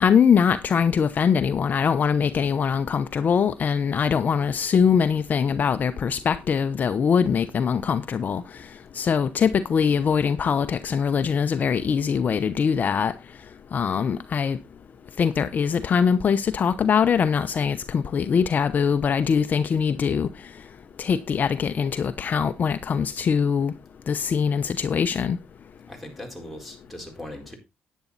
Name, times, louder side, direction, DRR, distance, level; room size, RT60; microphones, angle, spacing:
voice 1, 0.0-8.4 8.9-13.1 13.7-14.6 15.2-20.3 21.0-23.7 24.1-25.4, left 6 dB, 45° left, 0.8 m, -22 dB
voice 2, 25.9-27.6, left 1 dB, ahead, 4.3 m, -39 dB
10.5 x 9.4 x 4.0 m
cardioid pair, 95°, 4 cm